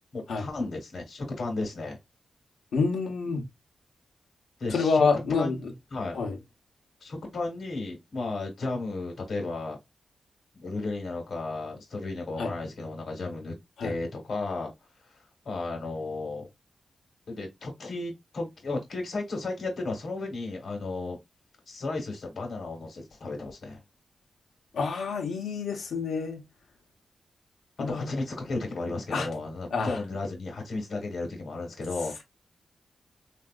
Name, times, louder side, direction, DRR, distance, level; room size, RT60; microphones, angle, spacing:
voice 1, 0.1-2.0 4.6-5.0 5.3-5.6 5.9-6.2 7.0-9.8 10.5-14.7 15.1-16.5 17.3-21.2 21.7-23.8 27.9-32.2, left 3 dB, 65° left, 1.3 m, -34 dB
voice 2, 2.7-3.5 4.7-5.7 6.1-6.4 12.4-12.5 13.8-13.9 24.7-26.4 27.8-28.1 29.1-29.3 29.7-29.9, left 4 dB, 85° left, 0.9 m, -27 dB
3.6 x 2.6 x 2.3 m
cardioid pair, 65°, 0 cm